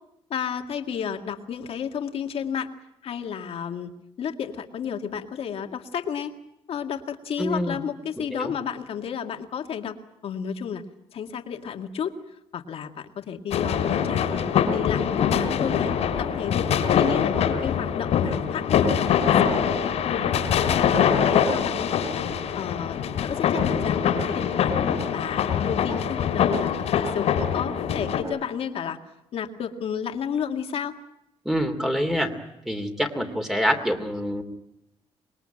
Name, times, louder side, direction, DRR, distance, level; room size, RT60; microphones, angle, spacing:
voice 1, 0.3-2.7 3.0-3.9 4.2-6.3 6.7-10.0 10.2-10.9 11.1-12.1 12.5-15.9 16.2-20.2 20.6-21.0 21.3-22.2 22.5-24.7 25.1-29.0 29.3-30.9, left 7 dB, 65° left, 5 dB, 2.1 m, -32 dB
voice 2, 7.4-7.8 8.3-8.5 31.4-32.3 32.7-34.4, equal, 5° right, 5 dB, 2.8 m, -26 dB
sound 1, 13.5-28.2, left 8 dB, 85° left, 3.2 m, -23 dB
26.0 x 21.0 x 9.1 m, 0.81 s
cardioid pair, 135°, 11 cm